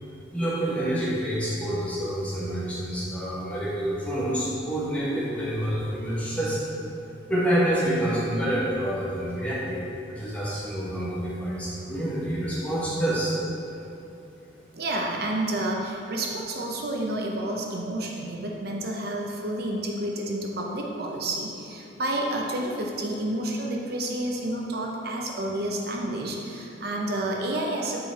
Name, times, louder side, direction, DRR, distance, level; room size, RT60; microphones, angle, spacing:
voice 1, 0.3-6.6 7.3-9.8 10.1-13.4, right 1 dB, 5° left, -8 dB, 1.3 m, -27 dB
voice 2, 14.8-28.0, right 1 dB, 50° right, 0 dB, 0.6 m, -30 dB
6.5 x 4.2 x 4.1 m, 2.9 s
head